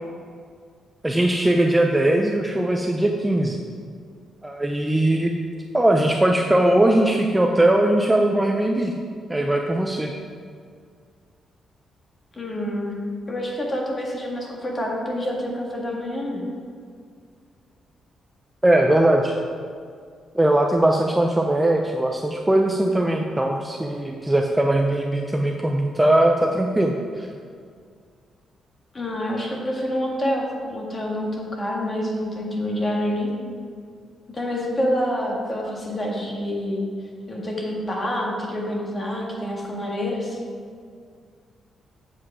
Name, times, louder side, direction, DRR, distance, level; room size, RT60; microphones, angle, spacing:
voice 1, 1.0-3.6 4.4-5.3 5.7-8.9 9.3-10.1 18.6-19.4 20.3-27.3, right 1 dB, 10° right, 1 dB, 0.5 m, -20 dB
voice 2, 12.3-12.9 13.3-16.4 28.9-33.3 34.3-36.8 37.3-40.4, equal, 25° left, -2 dB, 1.7 m, -27 dB
7.8 x 7.4 x 4.8 m, 2.1 s
cardioid pair, 145°, 0 cm